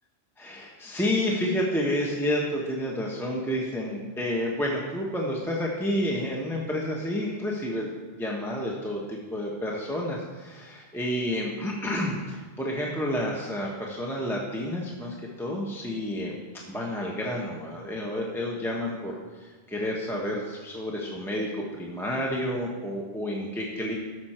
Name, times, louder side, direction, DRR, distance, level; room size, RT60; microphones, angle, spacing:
voice 1, 0.4-7.9 8.2-16.3 16.7-23.9, left 1 dB, ahead, -3 dB, 1.1 m, -30 dB
14.0 x 6.6 x 4.4 m, 1.4 s
omnidirectional pair, 1.1 m